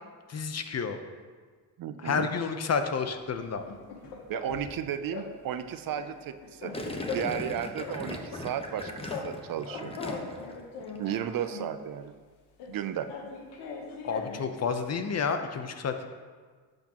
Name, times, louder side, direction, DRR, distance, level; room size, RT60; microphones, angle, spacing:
voice 1, 0.3-1.0 2.0-3.6 14.0-16.1, left 5 dB, 40° left, 8 dB, 0.7 m, -30 dB
voice 2, 1.8-2.3 4.3-6.7 7.1-9.9 11.0-12.1 12.7-13.1, right 9 dB, 55° right, 11 dB, 0.6 m, -34 dB
sound 1, 3.4-4.8 5.1-5.3 5.6-7.5 7.8-9.3 9.6-11.8 12.6-14.6, left 4 dB, 85° left, 1.2 m, -40 dB
Gurgling, 6.7-10.5 10.8-11.2, left 1 dB, 15° left, 1.0 m, -38 dB
11.5 x 6.4 x 2.9 m, 1.5 s
cardioid pair, 80°, 41 cm